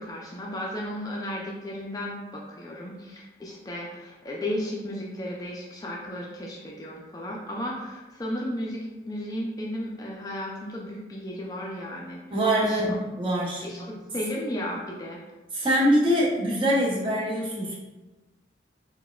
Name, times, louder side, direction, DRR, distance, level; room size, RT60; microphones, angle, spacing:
voice 1, 0.0-12.2 12.6-13.0 13.6-15.2 15.5-15.7, left 1 dB, 20° left, -2 dB, 0.3 m, -34 dB
voice 2, 12.3-12.9 13.2-13.6 15.5-17.8, equal, 30° right, -4 dB, 0.5 m, -23 dB
3.9 x 2.2 x 2.3 m, 1.1 s
head